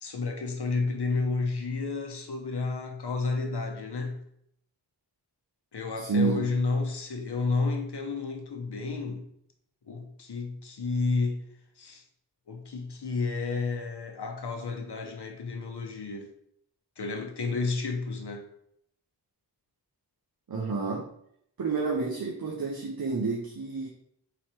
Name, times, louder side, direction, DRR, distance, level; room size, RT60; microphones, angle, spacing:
voice 1, 0.0-4.2 5.7-9.2 9.9-11.4 11.8-12.0 12.5-16.3 17.0-18.5, left 4 dB, 70° left, 0.8 m, -31 dB
voice 2, 6.0-6.5 20.5-21.1 21.6-23.9, right 4 dB, 60° right, 0.8 m, -29 dB
3.9 x 3.1 x 4.3 m
wide cardioid pair, 55°, 41 cm